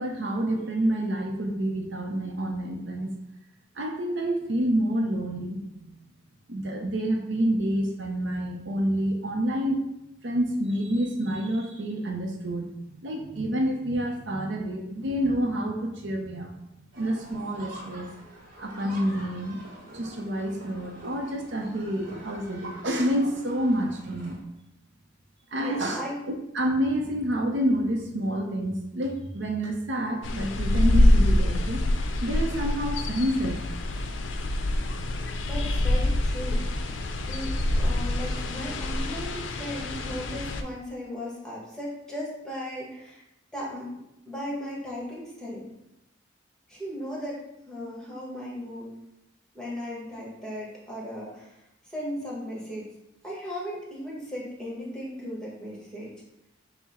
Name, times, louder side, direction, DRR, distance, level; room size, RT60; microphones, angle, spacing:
voice 1, 0.0-3.1 3.8-6.0 6.5-9.8 10.2-16.5 17.0-18.1 18.6-19.6 19.9-24.4 25.5-31.8 32.2-33.6, right 1 dB, 65° right, 2 dB, 0.6 m, -28 dB
sound 1, 16.9-24.4, right 1 dB, 45° right, 1.2 m, -45 dB
voice 2, 25.5-26.1 35.5-36.7 37.2-43.2 43.5-45.7 46.7-48.9 49.5-51.5 51.9-52.9 53.2-56.1, equal, 5° left, -5 dB, 1.2 m, -36 dB
sound 2, 30.2-40.6, left 1 dB, 75° left, 0.4 m, -25 dB
5.8 x 2.1 x 4.2 m, 0.86 s
head